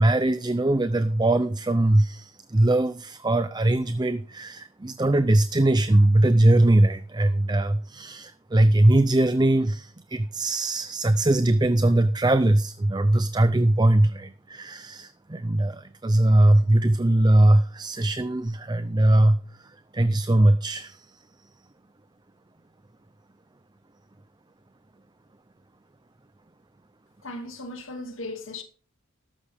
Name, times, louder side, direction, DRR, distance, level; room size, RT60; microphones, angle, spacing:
voice 1, 0.0-21.1, right 1 dB, 20° right, 0.5 m, -21 dB
voice 2, 27.2-28.6, left 2 dB, 60° left, 2.4 m, -36 dB
14.0 x 11.5 x 3.5 m
head